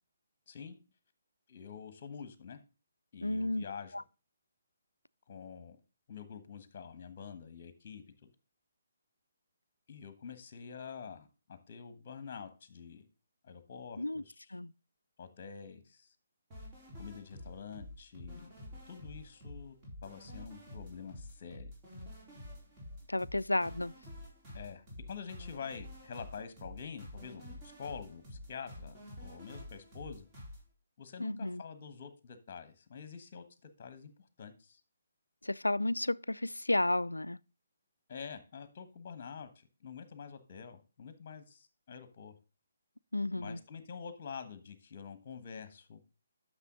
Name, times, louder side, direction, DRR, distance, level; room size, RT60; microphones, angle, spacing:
voice 1, 1.5-2.6 3.1-4.0 5.3-5.8 6.1-8.3 9.9-13.1 13.4-14.6 15.2-16.1 17.0-18.5 18.9-19.7 20.0-21.7 24.5-30.3 31.0-34.8 38.1-42.3 43.3-46.0, left 6 dB, 35° left, 1.3 m, -47 dB
voice 2, 3.2-3.6 3.9-4.0 14.0-14.2 14.5-14.7 23.1-23.9 31.2-31.6 35.4-37.4 43.1-43.6, left 1 dB, 80° left, 0.3 m, -32 dB
sound 1, 16.5-30.6, left 1 dB, 20° right, 4.0 m, -49 dB
9.8 x 6.7 x 3.8 m
figure-of-eight pair, 140°, 0 cm